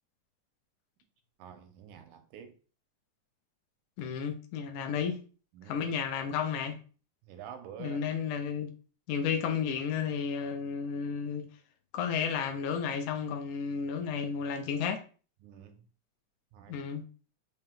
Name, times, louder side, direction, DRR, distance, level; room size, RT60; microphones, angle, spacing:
voice 1, 1.4-2.6 5.5-5.8 7.3-8.0 15.4-15.8 16.5-16.8, right 9 dB, 85° right, 2.1 m, -47 dB
voice 2, 4.0-5.2 5.7-6.8 7.8-8.7 9.1-11.5 11.9-15.0 16.7-17.0, left 6 dB, 80° left, 2.1 m, -32 dB
5.3 x 2.8 x 3.6 m
omnidirectional pair, 3.6 m